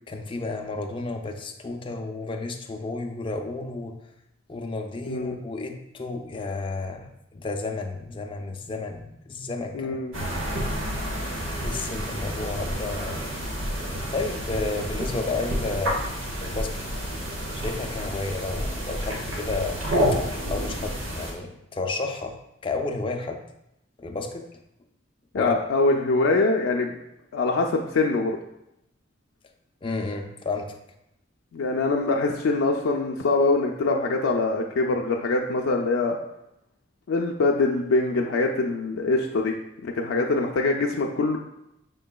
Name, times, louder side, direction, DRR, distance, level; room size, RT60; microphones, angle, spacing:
voice 1, 0.1-4.0 4.5-10.0 11.5-13.2 14.1-16.0 16.4-16.9 17.6-19.8 20.1-20.2 20.5-22.4 22.6-23.4 24.0-24.5 25.4-25.5 29.8-30.7, left 3 dB, 25° left, 4 dB, 0.4 m, -32 dB
voice 2, 5.1-5.4 9.7-10.2 25.3-27.0 27.3-28.4 31.5-36.2 37.1-39.5 39.8-41.4, left 3 dB, 90° left, 1 dB, 0.4 m, -23 dB
sound 1, 10.1-21.3, equal, 85° right, 1.0 m, -29 dB
5.4 x 3.8 x 2.2 m, 0.83 s
head